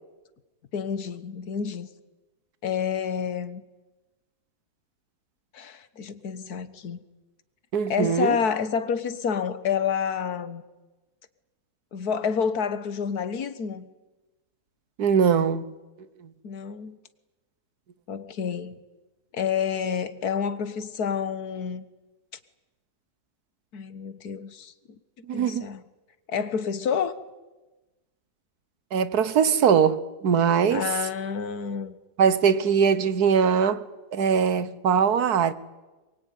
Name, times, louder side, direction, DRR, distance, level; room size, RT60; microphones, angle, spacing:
voice 1, 0.7-1.9 2.6-3.6 5.5-7.0 7.9-10.6 11.9-13.8 16.4-17.0 18.1-18.8 19.3-21.8 23.7-24.7 25.3-25.8 26.3-27.1 30.7-32.0, left 7 dB, 70° left, 1.8 m, -29 dB
voice 2, 7.7-8.4 15.0-15.7 25.3-25.7 28.9-30.9 32.2-33.8 34.1-35.5, right 7 dB, 70° right, 1.7 m, -21 dB
23.5 x 23.0 x 9.4 m
omnidirectional pair, 1.7 m